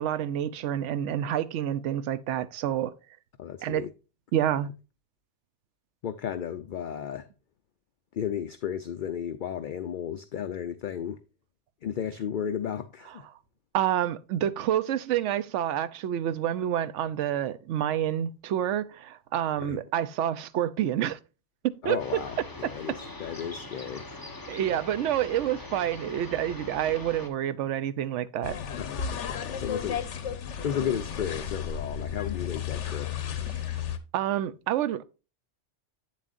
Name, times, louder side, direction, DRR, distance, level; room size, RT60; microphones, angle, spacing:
voice 1, 0.0-2.9 3.6-3.9 4.3-4.7 13.7-21.2 21.6-22.2 22.6-22.7 24.5-28.6 34.1-35.0, right 11 dB, 80° right, 0.9 m, -28 dB
voice 2, 3.4-3.9 6.0-7.3 8.1-11.2 11.8-13.3 19.6-19.8 21.8-24.1 28.8-30.0 30.6-33.1, left 9 dB, 55° left, 0.6 m, -34 dB
sound 1, 22.0-27.3, left 2 dB, 20° left, 1.1 m, -42 dB
sound 2, 28.4-34.0, left 8 dB, 80° left, 1.2 m, -33 dB
8.5 x 7.4 x 2.5 m
omnidirectional pair, 1.2 m